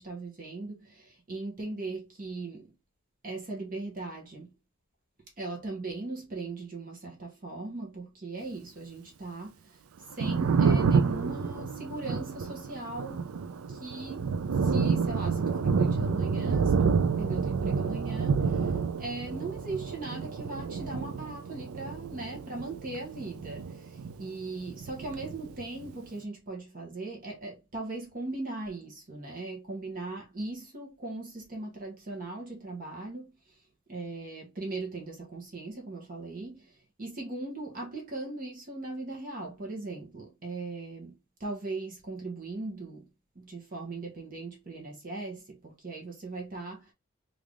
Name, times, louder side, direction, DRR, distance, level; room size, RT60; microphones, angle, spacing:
voice 1, 0.0-2.7 3.2-4.6 5.4-9.8 10.1-13.3 13.7-18.7 19.0-33.6 33.9-43.1 43.3-46.9, right 2 dB, 40° right, 1.0 m, -39 dB
Thunder, 10.0-24.4 24.7-25.9, right 5 dB, 70° right, 0.4 m, -29 dB
3.4 x 2.5 x 3.4 m
head